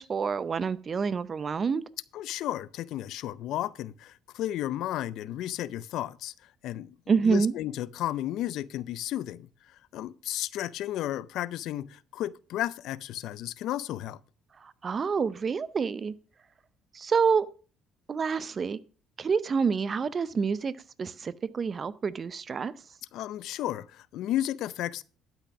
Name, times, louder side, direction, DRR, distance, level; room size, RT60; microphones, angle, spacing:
voice 1, 0.0-1.8 7.1-7.5 14.6-16.1 16.9-17.5 18.1-18.8 19.2-20.7 21.0-22.7, right 5 dB, 35° right, 0.6 m, -27 dB
voice 2, 2.1-6.3 6.6-6.9 7.2-14.2 23.1-25.0, left 13 dB, 70° left, 0.5 m, -33 dB
12.0 x 5.9 x 6.0 m
supercardioid pair, 85°, 0 cm